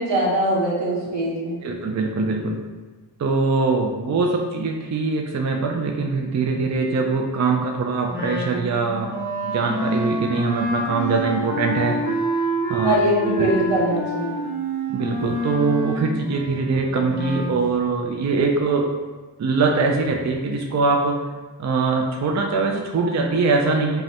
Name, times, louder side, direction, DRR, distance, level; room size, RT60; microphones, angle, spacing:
voice 1, 0.0-1.6 12.8-14.3, equal, 80° right, -5 dB, 1.2 m, -22 dB
voice 2, 1.6-2.6 3.2-9.1 9.5-12.0 12.7-13.0 13.4-13.5 14.9-18.9 19.4-21.2 21.6-24.0, right 4 dB, 40° right, 2 dB, 0.4 m, -22 dB
Wind instrument woodwind instrument, 8.1-17.6, right 1 dB, 20° right, 1.2 m, -27 dB
5.5 x 2.1 x 2.8 m, 1.3 s
wide cardioid pair, 80°, 43 cm